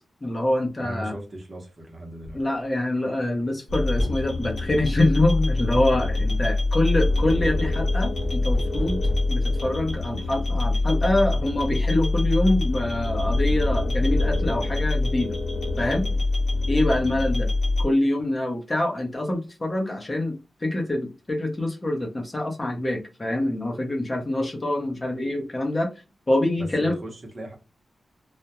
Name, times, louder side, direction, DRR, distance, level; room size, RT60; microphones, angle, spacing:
voice 1, 0.2-1.1 2.3-9.0 9.3-15.4 15.8-16.1 16.7-17.5 17.8-25.9 26.3-27.0, left 1 dB, 25° left, 0.6 m, -25 dB
voice 2, 0.8-2.4 16.0-16.1 26.6-27.5, right 1 dB, 35° right, 0.8 m, -38 dB
sound 1, 2.2-2.4 3.9-4.3 5.7-6.0 8.1-9.4, equal, ahead, 1.0 m, -30 dB
sound 2, 3.7-17.8, left 2 dB, 70° left, 0.9 m, -24 dB
2.3 x 2.1 x 2.8 m
wide cardioid pair, 120°, 0 cm